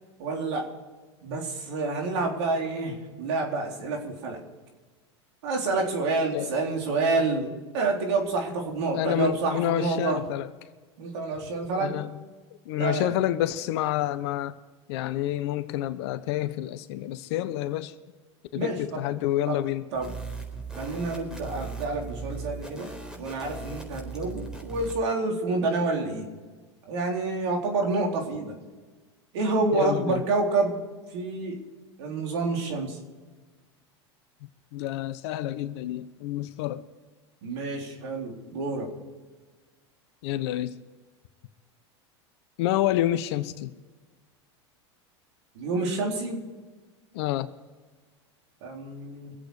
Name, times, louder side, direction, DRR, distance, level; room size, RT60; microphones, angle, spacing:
voice 1, 0.2-0.7 1.2-4.4 5.4-10.2 11.0-12.0 12.8-13.1 18.5-19.1 19.5-19.6 19.9-20.2 20.7-26.3 26.9-28.6 29.3-30.8 31.1-31.6 32.0-33.0 37.4-38.9 45.5-46.4 48.6-49.4, right 3 dB, 70° right, 3.9 m, -28 dB
voice 2, 8.9-10.5 11.8-12.2 12.6-14.5 14.9-17.9 18.5-19.8 29.7-30.2 34.7-36.8 40.2-40.7 42.6-43.7 47.1-47.5, left 13 dB, 65° left, 1.0 m, -28 dB
sound 1, 19.9-25.0, right 4 dB, 5° right, 4.1 m, -38 dB
25.0 x 8.4 x 4.9 m
hypercardioid pair, 100°, 15 cm